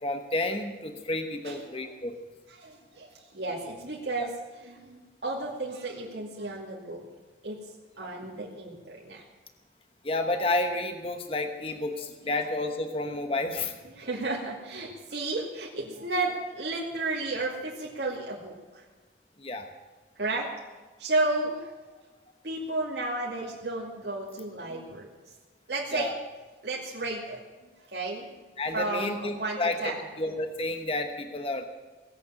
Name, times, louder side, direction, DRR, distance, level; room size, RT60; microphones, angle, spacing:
voice 1, 0.0-2.2 4.2-4.3 10.0-13.7 19.4-19.7 25.9-26.2 28.6-31.7, left 2 dB, 30° left, 6 dB, 1.1 m, -30 dB
voice 2, 1.4-1.8 2.5-7.0 7.4-7.6 8.0-9.2 12.3-12.4 13.9-18.8 20.2-20.5 21.0-21.7 22.4-25.1 25.7-26.1 26.6-27.4 27.9-28.2 28.7-30.0, right 2 dB, 70° right, -4 dB, 2.5 m, -33 dB
18.5 x 8.5 x 8.8 m, 1.3 s
head